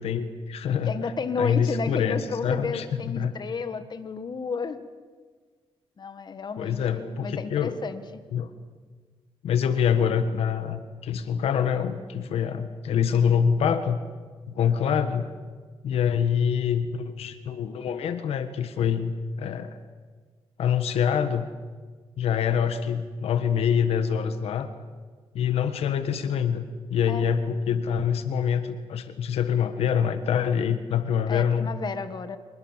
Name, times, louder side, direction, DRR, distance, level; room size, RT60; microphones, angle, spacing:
voice 1, 0.0-0.9 1.4-3.3 6.6-7.8 8.3-8.5 9.4-14.0 14.5-15.3 15.8-19.8 20.6-21.5 22.2-24.7 25.3-31.7, left 7 dB, 85° left, 10 dB, 1.5 m, -25 dB
voice 2, 0.9-4.8 6.0-8.0 27.1-27.3 31.3-32.4, left 5 dB, 45° left, 10 dB, 1.8 m, -32 dB
26.0 x 21.0 x 7.5 m, 1.5 s
cardioid pair, 95°, 10 cm